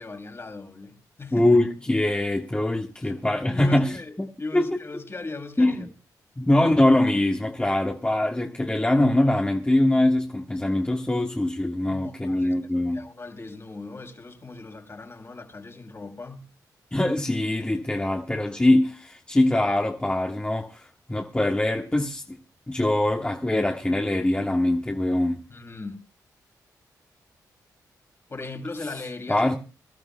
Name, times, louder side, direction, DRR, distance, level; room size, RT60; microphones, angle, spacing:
voice 1, 0.0-1.5 3.0-3.1 3.5-5.9 11.9-16.5 25.5-26.0 28.3-29.5, left 3 dB, 35° left, 2.9 m, -38 dB
voice 2, 1.3-3.9 4.2-4.3 4.5-4.6 5.6-5.8 6.4-13.0 16.9-22.4 22.7-25.4 29.3-29.5, left 1 dB, 15° left, 1.5 m, -23 dB
24.0 x 12.5 x 2.3 m
cardioid pair, 60°, 7 cm